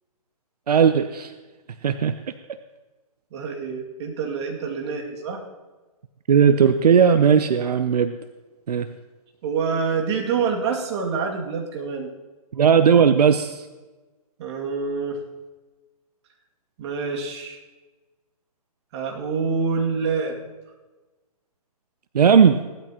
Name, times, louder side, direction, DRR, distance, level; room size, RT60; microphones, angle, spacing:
voice 1, 0.7-1.3 1.8-2.1 6.3-8.1 8.7-8.9 12.5-13.7 22.1-22.6, right 7 dB, 85° right, 11 dB, 0.6 m, -17 dB
voice 2, 3.3-5.4 9.4-12.1 14.4-15.2 16.8-17.6 18.9-20.4, right 5 dB, 45° right, 0 dB, 2.3 m, -26 dB
17.5 x 12.5 x 2.9 m, 1.2 s
hypercardioid pair, 145°, 20 cm